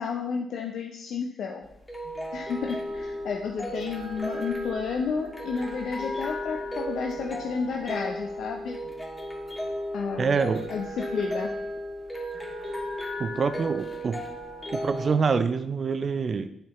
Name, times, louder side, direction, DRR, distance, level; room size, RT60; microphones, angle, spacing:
voice 1, 0.0-1.6 2.3-8.8 9.9-10.4 10.7-11.5, left 5 dB, 65° left, 1 dB, 0.5 m, -31 dB
sound 1, 1.6-15.2, equal, 15° left, 1.5 m, -35 dB
voice 2, 10.2-10.6 13.2-14.2 14.7-16.5, right 5 dB, 50° right, 11 dB, 0.5 m, -26 dB
7.2 x 4.5 x 3.6 m, 0.76 s
hypercardioid pair, 45°, 0 cm